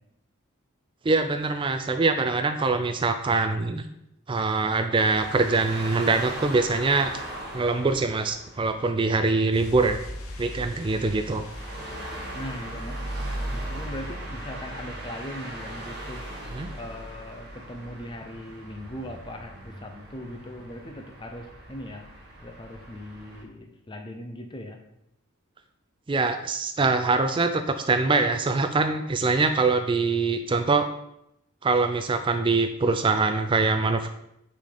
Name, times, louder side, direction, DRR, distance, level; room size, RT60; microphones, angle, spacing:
voice 1, 1.0-3.8 4.3-7.1 7.5-10.0 10.4-11.4 16.5-16.7 26.1-30.9 31.6-34.1, right 3 dB, 25° right, 7 dB, 0.3 m, -23 dB
sound 1, 4.9-23.4, right 1 dB, 45° right, 1.4 m, -39 dB
sound 2, 9.5-16.0 16.3-16.4, left 1 dB, 80° left, 1.0 m, -43 dB
voice 2, 12.3-13.1 13.5-16.3 16.7-22.1 22.4-24.8, left 1 dB, 20° left, 4 dB, 0.7 m, -39 dB
6.5 x 4.2 x 4.9 m, 0.79 s
head